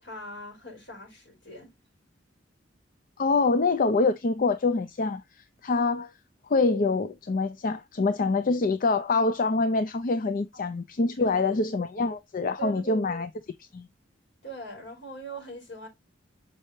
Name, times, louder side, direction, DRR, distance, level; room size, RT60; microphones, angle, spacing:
voice 1, 0.0-1.7 10.5-10.6 11.2-11.6 12.6-13.2 14.4-15.9, right 1 dB, 70° left, 5.5 m, -41 dB
voice 2, 3.2-5.2 5.6-6.1 6.5-13.3 13.7-13.9, left 3 dB, 45° left, 0.5 m, -25 dB
6.6 x 5.4 x 3.1 m
head